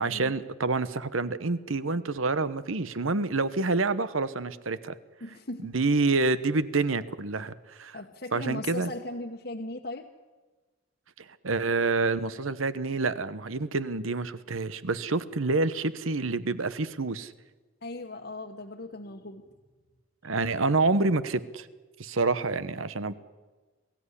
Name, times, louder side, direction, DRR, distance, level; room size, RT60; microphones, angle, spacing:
voice 1, 0.0-5.0 5.6-8.0 8.3-8.9 11.2-17.3 20.2-21.7 22.0-23.1, right 3 dB, 85° right, 15 dB, 1.0 m, -27 dB
voice 2, 5.2-5.7 7.9-10.1 17.8-19.5 20.2-20.3, left 2 dB, 50° left, 0 dB, 1.2 m, -38 dB
22.5 x 15.5 x 9.9 m, 1.3 s
head